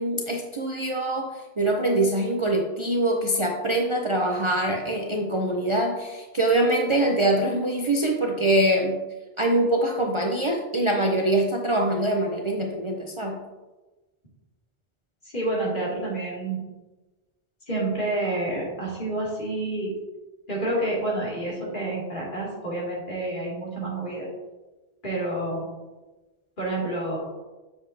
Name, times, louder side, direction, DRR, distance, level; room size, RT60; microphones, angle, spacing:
voice 1, 0.0-9.0 9.4-13.4, right 1 dB, 35° right, 1 dB, 0.6 m, -24 dB
voice 2, 15.3-16.7 17.7-19.9 20.5-24.3 25.0-25.7 26.6-27.2, right 2 dB, 50° left, -6 dB, 2.7 m, -28 dB
7.3 x 7.0 x 2.7 m, 1.2 s
omnidirectional pair, 1.1 m